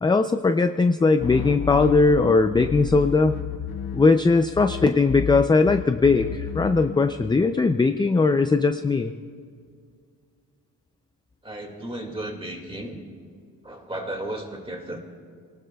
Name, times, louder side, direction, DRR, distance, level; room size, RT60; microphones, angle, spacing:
voice 1, 0.0-3.3 3.9-9.1, left 3 dB, 15° left, 7 dB, 0.3 m, -19 dB
sound 1, 1.2-4.3 4.5-7.1, left 8 dB, 75° left, 1.0 m, -32 dB
voice 2, 11.4-13.0 13.6-15.0, right 1 dB, 15° right, 2 dB, 2.0 m, -34 dB
28.5 x 18.5 x 2.3 m, 2.1 s
wide cardioid pair, 170°, 37 cm